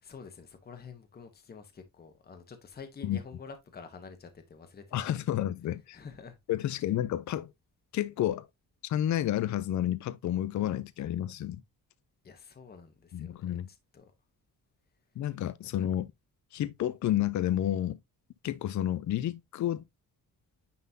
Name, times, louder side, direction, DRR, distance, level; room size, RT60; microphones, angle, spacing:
voice 1, 0.0-5.2 5.9-6.4 12.2-14.1, left 5 dB, 25° left, 1.0 m, -48 dB
voice 2, 4.9-6.0 6.5-7.5 7.9-8.5 8.8-11.6 13.1-13.7 15.2-16.1 16.5-18.0 18.4-19.8, left 12 dB, 55° left, 0.5 m, -30 dB
9.5 x 3.8 x 2.7 m
cardioid pair, 170°, 36 cm